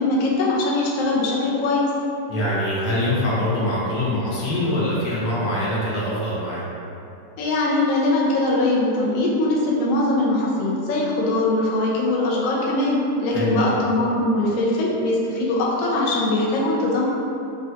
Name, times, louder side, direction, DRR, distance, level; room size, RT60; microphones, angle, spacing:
voice 1, 0.0-1.9 7.4-17.1, left 2 dB, 70° left, -4 dB, 0.9 m, -21 dB
voice 2, 2.3-6.6 13.3-13.7, left 1 dB, 90° left, -8 dB, 1.4 m, -24 dB
3.6 x 2.2 x 2.6 m, 2.6 s
omnidirectional pair, 1.7 m